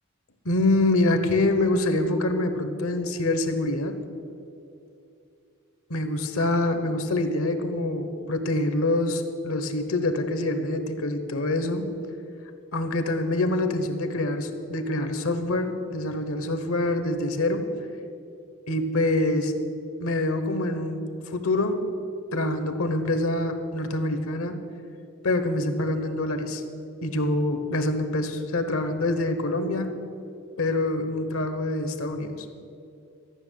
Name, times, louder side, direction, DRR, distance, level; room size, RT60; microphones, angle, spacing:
voice 1, 0.4-3.9 5.9-11.8 12.7-17.7 18.7-19.5 20.0-21.0 21.3-21.8 22.3-24.6 25.2-26.6 27.0-29.9 30.6-32.5, left 2 dB, 75° left, 8 dB, 1.2 m, -25 dB
13.5 x 6.5 x 9.3 m, 2.6 s
head